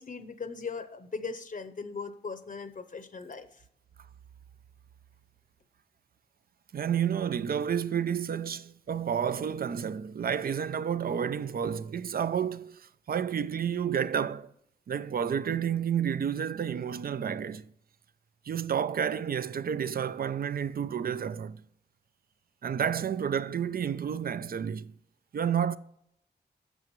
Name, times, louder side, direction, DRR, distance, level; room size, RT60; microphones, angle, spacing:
voice 1, 0.0-3.6, left 4 dB, 50° left, 0.7 m, -39 dB
voice 2, 6.7-14.5 14.9-17.7 18.5-21.6 22.6-24.9 25.3-25.8, right 8 dB, 60° right, 0.4 m, -30 dB
11.0 x 6.7 x 3.1 m
wide cardioid pair, 95°, 17 cm